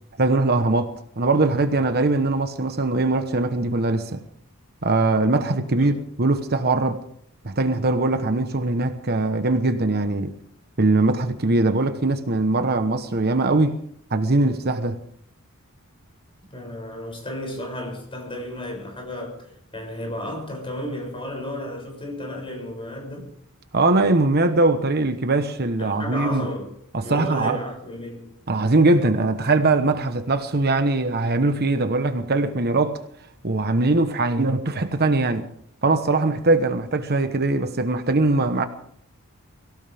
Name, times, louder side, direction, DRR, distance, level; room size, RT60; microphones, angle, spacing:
voice 1, 0.2-4.2 4.8-7.0 7.4-10.4 10.8-13.8 14.1-15.0 23.7-26.5 26.9-27.6 28.5-33.0 33.4-35.5 35.8-38.7, right 2 dB, 45° right, 1.1 m, -21 dB
voice 2, 16.5-23.3 25.8-26.7 27.0-28.3, left 1 dB, 25° left, 6.8 m, -33 dB
24.0 x 17.0 x 3.5 m
head